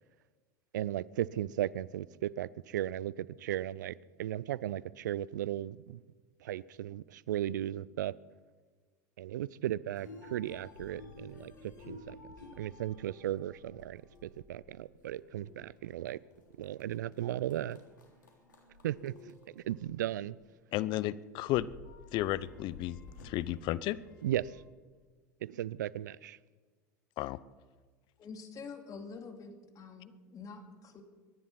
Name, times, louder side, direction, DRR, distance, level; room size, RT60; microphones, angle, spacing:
voice 1, 0.7-6.0 6.4-8.1 9.2-12.2 12.6-16.2 16.6-17.8 18.8-20.4 24.2-24.6 25.4-26.4, right 12 dB, 80° right, 0.5 m, -36 dB
sound 1, 9.9-20.8 21.1-21.2 21.3-24.6, left 3 dB, 90° left, 3.4 m, -53 dB
voice 2, 20.7-21.7 22.1-23.0 23.2-24.0 27.2-27.4, left 15 dB, 55° left, 0.7 m, -32 dB
voice 3, 28.2-31.0, left 4 dB, 35° left, 2.6 m, -47 dB
23.5 x 10.5 x 5.8 m
hypercardioid pair, 85°, 10 cm